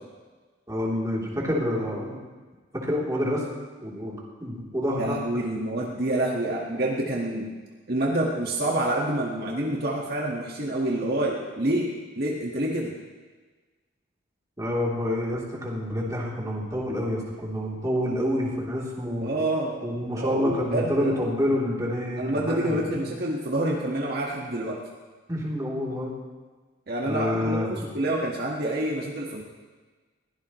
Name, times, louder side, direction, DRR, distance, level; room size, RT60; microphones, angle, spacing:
voice 1, 0.7-2.2 2.7-3.5 3.8-5.2 14.6-19.3 19.8-23.0 25.3-26.1 27.0-27.9, left 1 dB, 20° right, -4 dB, 3.3 m, -28 dB
voice 2, 5.0-7.5 7.9-13.0 19.2-19.8 20.2-21.1 22.2-24.8 26.9-29.4, right 1 dB, 55° right, -2 dB, 1.7 m, -27 dB
21.5 x 17.0 x 3.2 m, 1.4 s
head